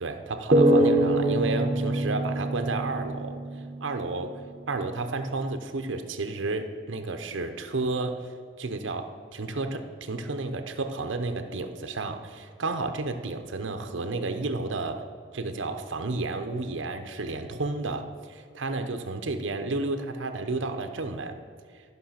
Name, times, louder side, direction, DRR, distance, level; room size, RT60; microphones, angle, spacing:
voice 1, 0.0-3.4 3.8-4.4 4.7-8.3 8.6-15.1 15.3-21.4, right 3 dB, 85° right, 6 dB, 0.8 m, -31 dB
sound 1, 0.5-3.9, right 1 dB, 35° right, 0.8 m, -24 dB
13.5 x 5.5 x 5.8 m, 2.1 s
head